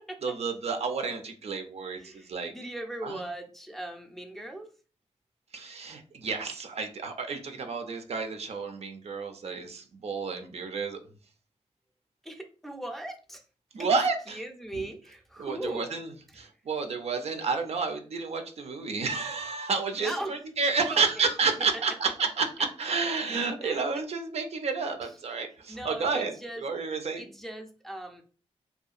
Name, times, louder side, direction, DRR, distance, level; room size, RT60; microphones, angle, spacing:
voice 1, 0.2-2.5 3.0-3.2 5.5-11.0 13.7-14.4 14.7-14.8 15.4-27.2, right 4 dB, 65° right, 6 dB, 0.5 m, -30 dB
voice 2, 2.0-4.7 12.2-13.4 13.8-13.9 14.3-16.0 20.0-20.3 20.9-21.3 21.7-21.8 23.6-23.8 25.7-26.6 27.2-28.2, right 1 dB, ahead, 2 dB, 0.5 m, -39 dB
2.7 x 2.2 x 2.4 m, 0.38 s
cardioid pair, 75°, 12 cm